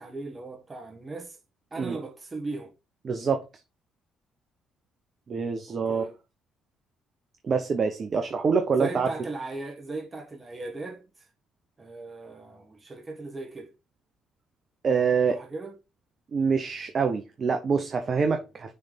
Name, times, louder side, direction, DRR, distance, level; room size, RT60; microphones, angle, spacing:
voice 1, 0.0-1.4 1.7-2.7 5.7-6.2 8.8-11.3 11.8-13.7 15.3-15.8, right 3 dB, 30° right, 1.7 m, -38 dB
voice 2, 3.0-3.4 5.3-6.1 7.4-9.1 14.8-15.4 16.3-18.7, right 5 dB, 50° right, 0.9 m, -25 dB
6.7 x 3.5 x 4.1 m
hypercardioid pair, 55°, 0 cm